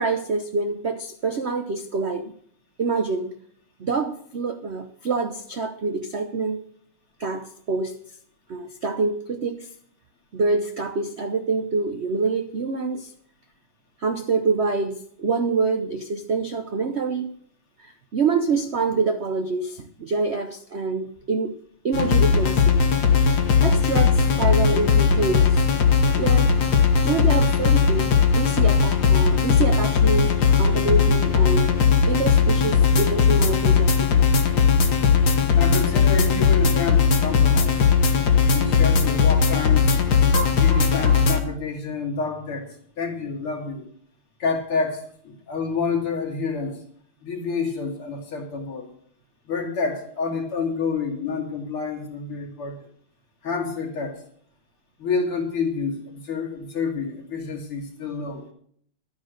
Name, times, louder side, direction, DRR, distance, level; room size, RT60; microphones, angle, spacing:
voice 1, 0.0-2.3 2.8-3.3 3.8-6.6 7.2-8.0 8.5-9.7 10.3-13.1 14.0-17.3 17.8-21.5 21.8-22.8 23.6-25.6 26.1-26.6 27.0-31.7 32.1-34.2, right 4 dB, 70° right, 8 dB, 0.6 m, -26 dB
sound 1, 21.9-41.4, left 6 dB, 50° left, 1.9 m, -18 dB
voice 2, 35.5-37.9 38.5-40.0 40.6-43.8 44.4-46.8 47.2-48.9 49.5-52.9 53.4-54.2 55.0-58.5, left 4 dB, 75° left, 0 dB, 3.5 m, -28 dB
12.5 x 9.4 x 6.5 m, 0.63 s
omnidirectional pair, 2.4 m